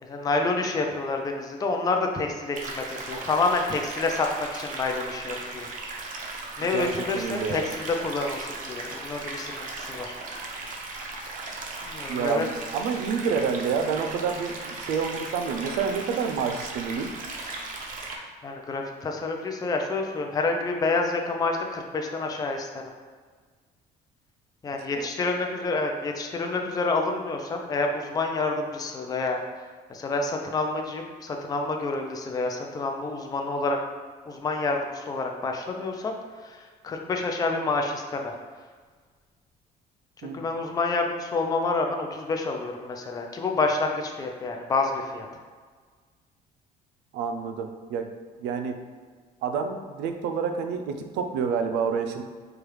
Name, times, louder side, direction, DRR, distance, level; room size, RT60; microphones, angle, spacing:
voice 1, 0.0-5.7 6.6-10.1 11.9-12.5 18.4-22.7 24.6-29.4 29.9-33.8 34.3-36.1 36.4-36.6 36.8-38.3 40.3-45.3, left 3 dB, 20° left, 3 dB, 0.4 m, -28 dB
sound 1, 2.5-18.2, right 3 dB, 50° right, 0.7 m, -37 dB
voice 2, 6.7-7.7 12.1-17.1 25.0-25.1 40.2-40.5 47.1-48.1 48.4-48.8 49.4-52.2, right 6 dB, 90° right, 6 dB, 0.4 m, -28 dB
4.7 x 2.3 x 3.1 m, 1.5 s
cardioid pair, 110°, 17 cm